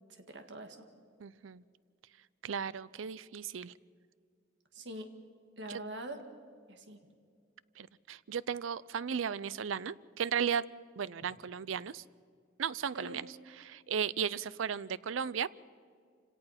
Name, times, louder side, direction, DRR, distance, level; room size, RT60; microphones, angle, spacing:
voice 1, 0.1-0.9 4.7-5.2 5.6-6.3 6.7-7.0 12.9-13.2, right 1 dB, 60° right, 6 dB, 1.9 m, -44 dB
voice 2, 1.2-1.6 2.4-3.7 5.7-5.8 7.8-10.6 11.0-12.0 12.6-13.3 13.6-15.6, right 7 dB, 80° right, 20 dB, 0.5 m, -35 dB
27.0 x 17.5 x 5.8 m, 2.2 s
head